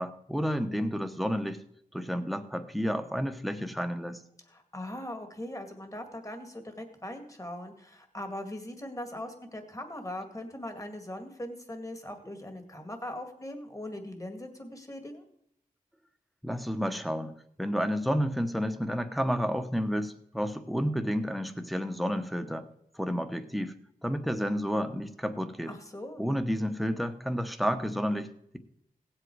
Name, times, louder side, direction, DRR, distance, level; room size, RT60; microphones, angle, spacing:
voice 1, 0.0-1.6 1.9-4.2 16.4-17.3 17.6-22.7 22.9-23.7 24.0-25.7 26.2-28.6, equal, ahead, 8 dB, 1.0 m, -30 dB
voice 2, 4.5-15.2 25.7-26.2, left 1 dB, 20° left, 6 dB, 2.0 m, -40 dB
17.0 x 7.7 x 4.7 m, 0.72 s
wide cardioid pair, 75°, 16 cm